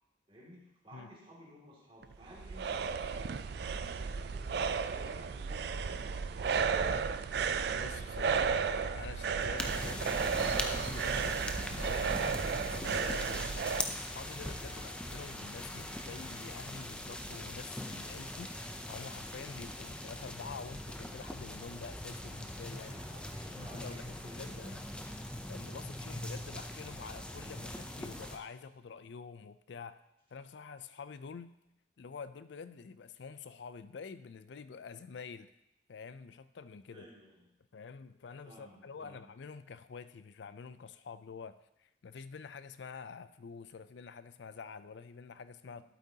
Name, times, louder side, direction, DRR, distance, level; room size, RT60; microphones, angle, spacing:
voice 1, 0.3-4.5 4.8-7.1 14.6-14.9 22.7-24.7 36.9-37.5 38.4-39.2 45.8-45.9, equal, 30° right, -4 dB, 2.4 m, -55 dB
sound 1, 2.0-13.9, right 6 dB, 55° right, 0.3 m, -33 dB
voice 2, 7.6-8.6 9.0-11.4 11.7-13.5 13.9-23.0 23.5-24.9 25.5-30.0 30.3-31.5 32.0-35.5 35.9-37.1 37.7-45.8, left 5 dB, 70° left, 13 dB, 0.4 m, -47 dB
Bowed string instrument, 8.3-16.6, left 2 dB, 85° left, 2.3 m, -57 dB
sound 2, 9.6-28.4, left 1 dB, 5° left, 0.5 m, -41 dB
12.0 x 8.3 x 2.8 m, 0.86 s
head